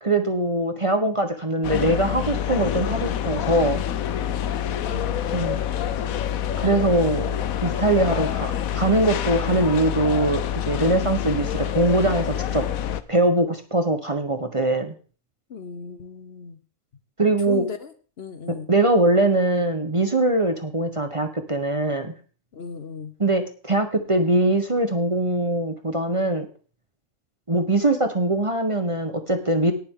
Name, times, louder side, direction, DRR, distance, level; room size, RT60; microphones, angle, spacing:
voice 1, 0.0-3.8 5.3-5.6 6.6-7.4 7.6-12.6 13.1-15.0 17.2-17.6 18.7-22.1 23.2-26.5 27.5-29.7, right 2 dB, 25° right, 7 dB, 1.0 m, -22 dB
sound 1, 1.6-13.0, left 10 dB, 85° left, 1.2 m, -27 dB
voice 2, 4.8-5.2 15.5-16.6 17.5-18.7 22.5-23.1, left 5 dB, 50° left, 10 dB, 1.0 m, -36 dB
18.5 x 7.2 x 3.7 m, 0.40 s
omnidirectional pair, 1.4 m